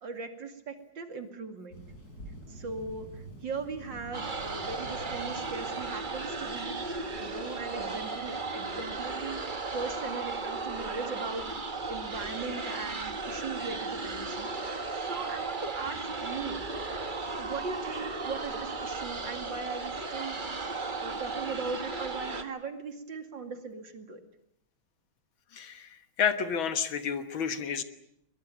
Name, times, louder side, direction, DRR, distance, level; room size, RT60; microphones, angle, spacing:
voice 1, 0.0-1.8 2.5-3.1 3.4-6.7 7.2-11.4 11.9-16.6 17.4-24.2, right 4 dB, 60° right, 7 dB, 3.0 m, -39 dB
Thunder, 1.7-8.4, right 1 dB, 45° left, 6.1 m, -48 dB
sound 1, 4.1-22.4, right 3 dB, 25° right, 1.4 m, -35 dB
voice 2, 25.5-27.8, left 7 dB, 75° left, 10 dB, 2.2 m, -30 dB
22.0 x 21.5 x 9.2 m, 0.74 s
omnidirectional pair, 2.3 m